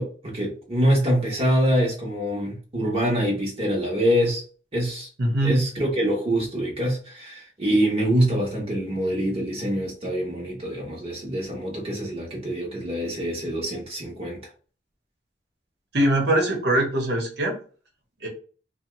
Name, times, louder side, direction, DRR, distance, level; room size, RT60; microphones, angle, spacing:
voice 1, 0.0-4.4 4.7-5.1 5.4-14.4, equal, 35° right, 0.8 m, -25 dB
voice 2, 5.2-5.6 15.9-17.5 18.2-18.3, right 1 dB, 65° right, 1.0 m, -22 dB
2.8 x 2.2 x 3.0 m
head